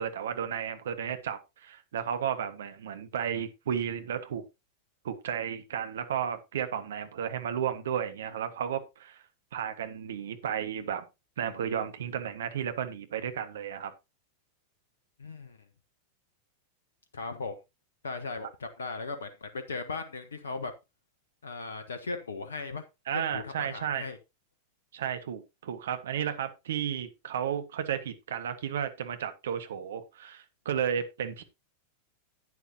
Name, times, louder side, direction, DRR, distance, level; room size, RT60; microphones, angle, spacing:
voice 1, 0.0-4.4 5.0-9.2 9.5-11.0 11.4-13.9 23.1-24.1 24.9-31.4, right 8 dB, 60° right, 1.5 m, -33 dB
voice 2, 15.2-15.6 17.1-17.6 18.0-20.7 21.4-22.8 23.3-24.2, left 3 dB, 70° left, 1.1 m, -37 dB
11.0 x 9.8 x 2.8 m
figure-of-eight pair, 90°, 0 cm